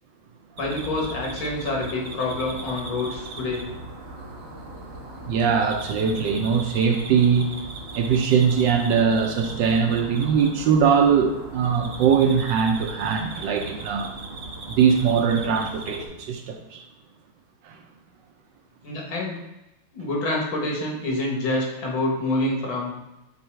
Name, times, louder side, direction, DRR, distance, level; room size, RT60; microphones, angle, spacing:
voice 1, 0.6-3.6 18.8-19.4 19.9-22.9, left 2 dB, 75° left, -2 dB, 2.2 m, -27 dB
sound 1, 0.6-16.1, right 2 dB, 55° right, 0.7 m, -38 dB
voice 2, 5.3-7.5 7.9-14.1 14.7-16.8 17.6-17.8, right 6 dB, 75° right, 4 dB, 1.2 m, -21 dB
5.6 x 4.0 x 4.4 m, 0.96 s
omnidirectional pair, 2.2 m